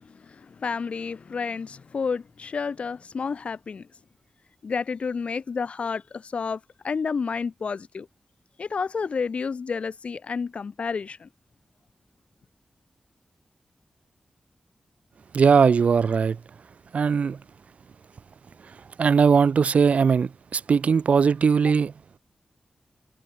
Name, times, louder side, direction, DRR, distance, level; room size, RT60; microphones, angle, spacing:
voice 1, 0.0-3.9 4.6-8.1 8.6-11.3, left 5 dB, 60° left, 3.9 m, -30 dB
voice 2, 15.3-16.4 16.9-17.4 19.0-21.9, right 6 dB, 75° right, 4.1 m, -19 dB
wide cardioid pair, 155°, 2 cm